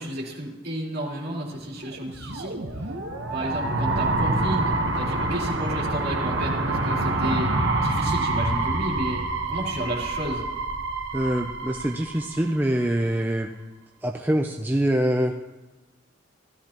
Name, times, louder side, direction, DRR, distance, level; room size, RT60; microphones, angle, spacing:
voice 1, 0.0-2.9 3.3-9.2 9.5-10.4, right 1 dB, 50° right, -4 dB, 3.1 m, -32 dB
sound 1, 1.9-12.8, right 2 dB, 65° right, 1.1 m, -27 dB
voice 2, 11.1-13.5 14.0-15.3, right 1 dB, 10° right, 2 dB, 0.5 m, -24 dB
16.0 x 13.0 x 3.0 m, 1.1 s
head